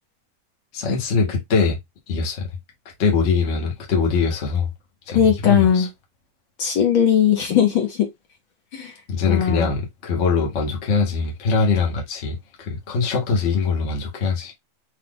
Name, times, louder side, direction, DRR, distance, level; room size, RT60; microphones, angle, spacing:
voice 1, 0.7-1.8 2.1-2.5 3.0-4.7 5.1-5.9 9.1-14.5, left 5 dB, 85° left, 0.6 m, -22 dB
voice 2, 5.1-5.9 6.6-8.1 8.7-8.9 9.3-9.7, left 9 dB, 65° left, 1.3 m, -18 dB
5.7 x 2.4 x 3.8 m
omnidirectional pair, 3.4 m